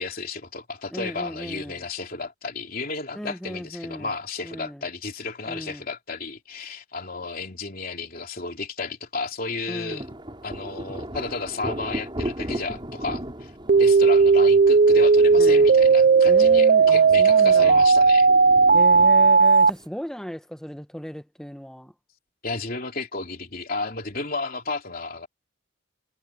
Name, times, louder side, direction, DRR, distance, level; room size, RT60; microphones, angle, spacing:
voice 1, 0.0-10.1 10.4-13.5 13.8-18.3 22.4-25.3, left 3 dB, 45° left, 3.2 m, -33 dB
voice 2, 0.9-1.8 3.1-4.1 4.4-4.9 5.5-5.8 9.7-10.1 15.4-15.7 16.2-17.9 18.7-21.9, equal, 5° left, 1.1 m, -35 dB
sound 1, 9.9-19.9, equal, 25° right, 6.8 m, -37 dB
sound 2, 13.7-19.7, right 4 dB, 50° right, 0.5 m, -15 dB
head